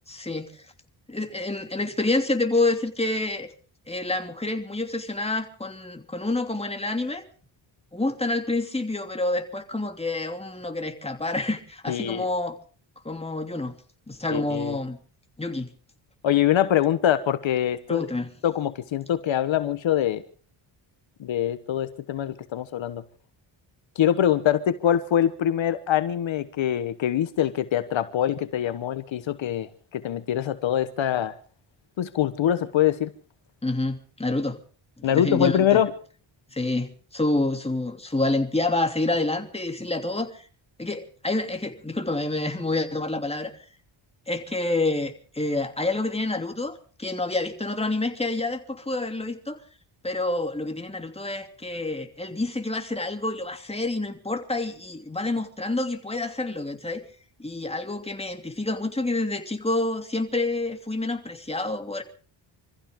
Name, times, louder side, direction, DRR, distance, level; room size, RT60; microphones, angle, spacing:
voice 1, 0.1-0.6 1.1-3.5 3.9-7.2 7.9-12.6 13.0-13.7 14.1-15.0 15.4-15.7 17.9-18.3 33.6-34.6 35.0-35.8 36.5-40.5 40.8-43.5 44.3-49.6 50.0-57.0 57.4-62.0, left 2 dB, 15° left, 2.9 m, -28 dB
voice 2, 11.9-12.2 14.3-14.8 16.2-18.1 18.4-20.2 21.2-23.0 24.0-31.3 32.0-33.1 35.0-35.9, left 10 dB, 70° left, 1.3 m, -24 dB
26.0 x 15.0 x 3.7 m
cardioid pair, 80°, 47 cm